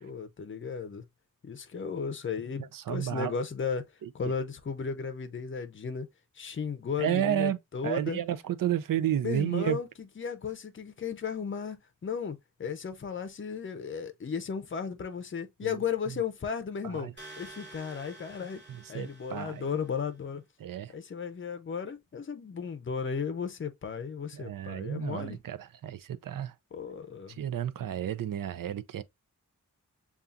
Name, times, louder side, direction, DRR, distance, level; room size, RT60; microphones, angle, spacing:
voice 1, 0.0-1.0 1.4-3.8 4.1-6.1 6.4-8.2 9.2-11.8 12.0-17.1 17.4-18.6 18.9-20.4 20.9-25.4 26.7-27.4, left 6 dB, 40° left, 0.6 m, -35 dB
voice 2, 2.6-3.3 4.0-4.1 7.0-7.6 7.8-9.8 15.6-15.7 16.8-17.1 18.7-19.7 20.6-20.9 24.3-26.5 27.4-29.0, right 11 dB, 85° right, 0.5 m, -31 dB
sound 1, 17.2-20.1, right 2 dB, 35° right, 1.9 m, -50 dB
6.8 x 2.4 x 2.4 m
wide cardioid pair, 140°, 32 cm